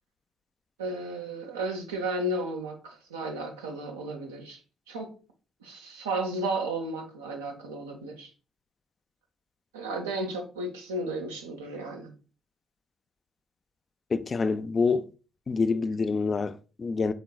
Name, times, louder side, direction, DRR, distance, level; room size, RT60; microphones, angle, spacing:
voice 1, 0.8-4.6 4.9-5.1 5.6-8.3 9.7-12.1, right 2 dB, 85° right, 0.7 m, -33 dB
voice 2, 14.1-15.1 15.5-17.1, left 4 dB, 40° left, 0.4 m, -26 dB
5.1 x 3.7 x 2.3 m
hypercardioid pair, 45°, 0 cm